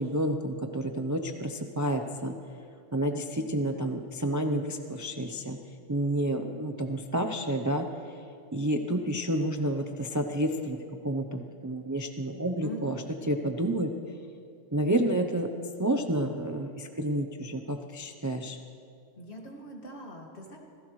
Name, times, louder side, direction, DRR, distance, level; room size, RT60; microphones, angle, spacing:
voice 1, 0.0-2.3 2.9-5.6 5.9-8.2 8.5-10.8 11.0-13.0 13.3-13.9 14.7-15.5 15.8-18.6, right 1 dB, 20° right, 5 dB, 0.5 m, -30 dB
voice 2, 12.6-13.1 19.2-20.6, right 1 dB, 55° left, 0 dB, 2.4 m, -42 dB
26.0 x 16.5 x 3.2 m, 2.5 s
omnidirectional pair, 1.3 m